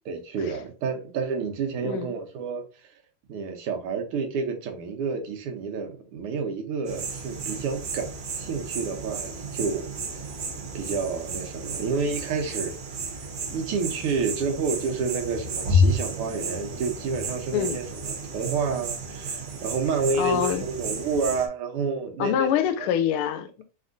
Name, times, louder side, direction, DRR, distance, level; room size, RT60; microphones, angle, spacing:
voice 1, 0.1-2.6 3.3-9.9 10.8-12.7 13.5-22.9, right 5 dB, 85° right, 1.7 m, -29 dB
voice 2, 1.8-2.1 17.5-17.8 20.2-20.7 22.2-23.6, left 9 dB, 80° left, 1.4 m, -25 dB
sound 1, 6.9-21.5, equal, 60° right, 1.4 m, -31 dB
4.2 x 3.6 x 2.5 m
omnidirectional pair, 2.4 m